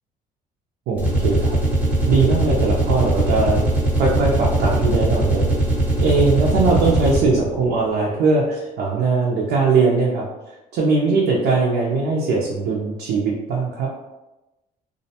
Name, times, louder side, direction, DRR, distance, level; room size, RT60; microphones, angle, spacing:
sound 1, 0.9-7.5, right 1 dB, 10° right, 0.7 m, -20 dB
voice 1, 0.9-1.6 2.1-3.6 3.9-5.5 6.0-10.2 10.7-13.9, right 3 dB, 80° right, -3 dB, 0.5 m, -20 dB
2.5 x 2.0 x 2.7 m, 1.0 s
cardioid pair, 110°, 17 cm